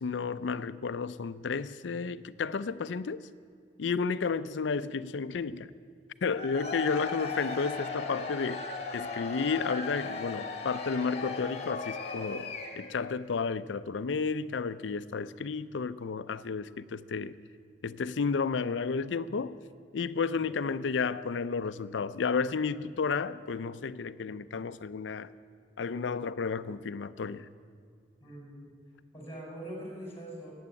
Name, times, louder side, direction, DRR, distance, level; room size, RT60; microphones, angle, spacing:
voice 1, 0.0-3.2 3.8-5.7 6.2-17.4 17.8-19.6 19.9-25.3 25.8-27.5, left 5 dB, 85° left, 0.5 m, -32 dB
Cheering / Crowd, 6.3-13.0, left 4 dB, 35° left, 1.6 m, -37 dB
voice 2, 6.9-7.5 20.4-20.6 28.2-28.8 29.1-30.5, right 1 dB, 15° left, 4.8 m, -44 dB
16.0 x 8.7 x 9.7 m
head